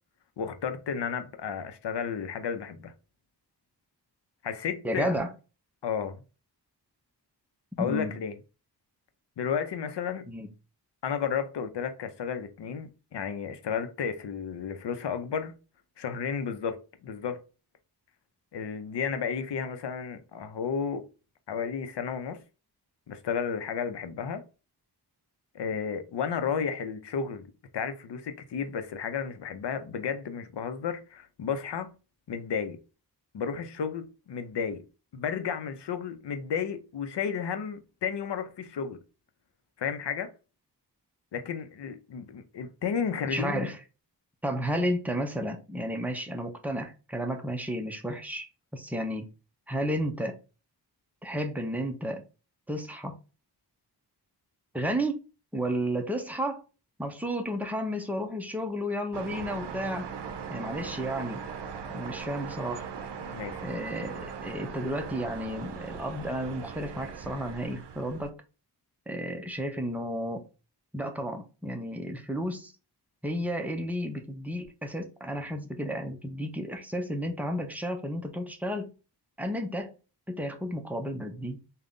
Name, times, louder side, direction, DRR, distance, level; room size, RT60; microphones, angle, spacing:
voice 1, 0.4-2.9 4.4-5.1 5.8-6.2 7.8-8.3 9.4-10.3 11.0-15.5 16.0-17.4 18.5-21.1 21.5-22.4 23.1-24.4 25.5-27.5 27.7-31.9 32.3-32.8 33.3-34.8 35.1-39.0 39.8-40.3 41.3-43.7 63.2-63.6, left 7 dB, 80° left, 0.7 m, -32 dB
voice 2, 4.8-5.3 7.8-8.1 10.3-10.5 43.2-43.8 44.4-48.5 48.7-49.3 49.7-50.4 51.2-52.2 52.7-53.2 54.7-55.2 55.5-56.6 57.0-60.1 60.5-61.4 61.9-62.9 63.6-68.4 69.1-70.4 70.9-72.7 73.2-78.9 79.4-80.0 80.3-81.6, equal, 5° right, 0.6 m, -32 dB
sound 1, 59.1-68.3, right 6 dB, 80° right, 0.6 m, -39 dB
3.8 x 2.2 x 3.6 m
wide cardioid pair, 130°, 41 cm